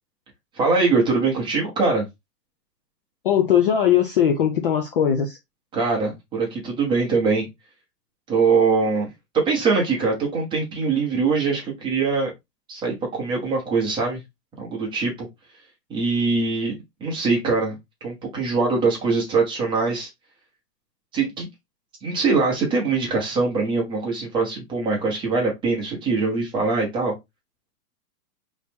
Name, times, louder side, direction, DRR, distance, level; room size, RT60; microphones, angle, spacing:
voice 1, 0.6-2.0 5.7-7.5 8.3-9.1 9.3-12.3 12.7-14.2 14.6-15.3 15.9-16.8 17.0-17.7 18.0-20.1 21.1-21.5 22.0-27.1, right 4 dB, 10° right, 0.9 m, -22 dB
voice 2, 3.2-5.4, left 9 dB, 35° left, 0.5 m, -19 dB
4.1 x 3.1 x 3.4 m
hypercardioid pair, 160°, 48 cm